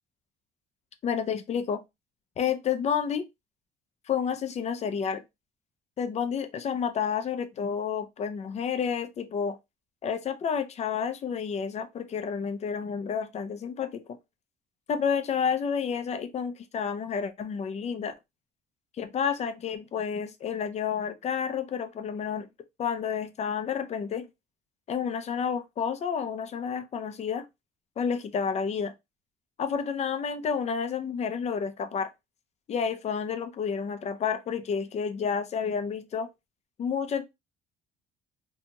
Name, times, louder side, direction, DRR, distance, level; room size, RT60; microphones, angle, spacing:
voice 1, 1.0-1.8 2.4-3.3 4.1-5.2 6.0-9.6 10.0-14.0 14.9-18.1 19.0-22.5 22.8-24.3 24.9-27.5 28.0-28.9 29.6-32.1 32.7-36.3 36.8-37.2, left 7 dB, 40° left, 0.5 m, -30 dB
2.7 x 2.7 x 2.2 m
cardioid pair, 110°, 17 cm